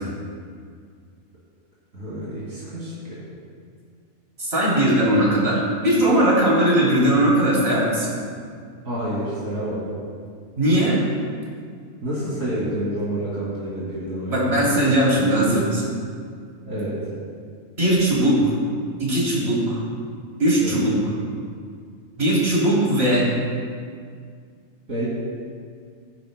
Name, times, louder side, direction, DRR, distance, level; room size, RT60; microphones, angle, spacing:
voice 1, 1.9-3.2 8.8-9.8 12.0-14.8 16.7-17.1 20.6-21.0 24.9-25.1, right 1 dB, 65° right, -9 dB, 2.9 m, -29 dB
voice 2, 4.4-8.2 10.6-11.0 14.3-15.8 17.8-18.5 19.0-19.8 20.4-21.1 22.2-23.3, right 1 dB, 45° right, -6 dB, 3.6 m, -19 dB
19.5 x 10.5 x 2.2 m, 2.1 s
omnidirectional pair, 1.5 m